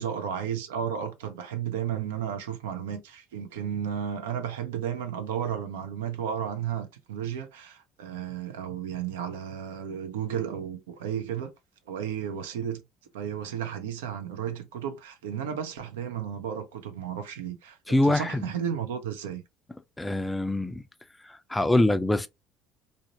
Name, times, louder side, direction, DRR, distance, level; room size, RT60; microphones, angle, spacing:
voice 1, 0.0-11.5 11.9-12.8 13.1-19.4, right 8 dB, 80° right, 0.5 m, -33 dB
voice 2, 17.9-18.5 20.0-20.8 21.2-22.3, left 1 dB, 10° left, 0.4 m, -24 dB
2.5 x 2.0 x 2.7 m
hypercardioid pair, 65°, 0 cm